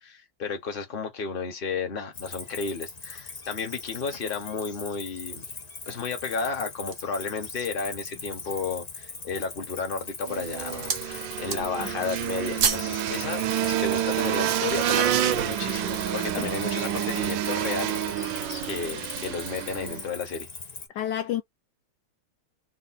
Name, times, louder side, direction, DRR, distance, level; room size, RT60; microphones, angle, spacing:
voice 1, 0.0-5.5 5.9-18.3 18.6-20.5, left 5 dB, 35° left, 1.0 m, -33 dB
Cricket, 2.1-20.9, left 4 dB, 50° left, 0.4 m, -40 dB
sound 1, 6.2-7.2 7.8-7.9 8.4-8.9 9.6-10.0 10.3-11.1 11.4-11.9 12.2-13.0 13.3-13.4, right 6 dB, 50° right, 0.9 m, -30 dB
sound 2, 10.2-20.1, right 11 dB, 70° right, 1.3 m, -28 dB
voice 2, 21.0-21.4, left 11 dB, 75° left, 1.0 m, -29 dB
3.6 x 2.7 x 4.1 m
omnidirectional pair, 2.3 m